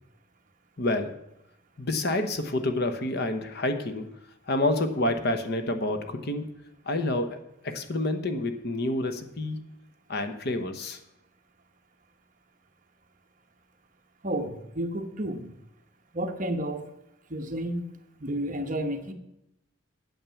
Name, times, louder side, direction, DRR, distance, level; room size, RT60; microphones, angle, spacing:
voice 1, 0.8-1.2 1.8-4.1 4.5-6.5 6.9-9.6 10.1-11.0, left 2 dB, 50° left, 0.9 m, -28 dB
voice 2, 14.2-15.5 16.1-16.8 17.3-17.8 18.2-19.1, right 1 dB, 40° right, 1.0 m, -31 dB
9.0 x 7.5 x 7.0 m
head